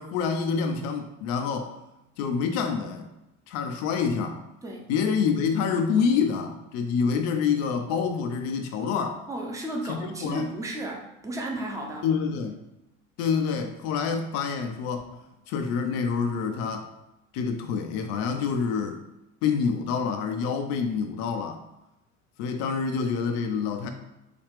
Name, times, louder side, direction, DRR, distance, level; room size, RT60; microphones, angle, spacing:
voice 1, 0.0-1.7 2.2-3.1 3.5-4.4 4.9-9.2 9.9-10.5 12.0-12.6 13.2-15.2 15.5-16.9 17.3-19.0 19.4-21.6 22.4-23.9, left 6 dB, 40° left, 6 dB, 0.4 m, -27 dB
voice 2, 9.3-12.1, right 1 dB, 5° right, 1 dB, 0.6 m, -33 dB
4.9 x 2.3 x 3.3 m, 0.94 s
figure-of-eight pair, 65°, 44 cm